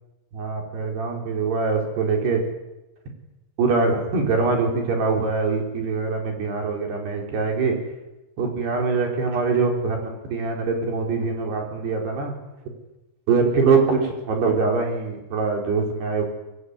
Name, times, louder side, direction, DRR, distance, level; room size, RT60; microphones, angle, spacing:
voice 1, 0.3-2.4 3.6-7.7 8.4-12.4 13.3-16.2, right 4 dB, 60° right, 2 dB, 6.5 m, -23 dB
25.5 x 23.0 x 9.8 m, 1.0 s
omnidirectional pair, 5.3 m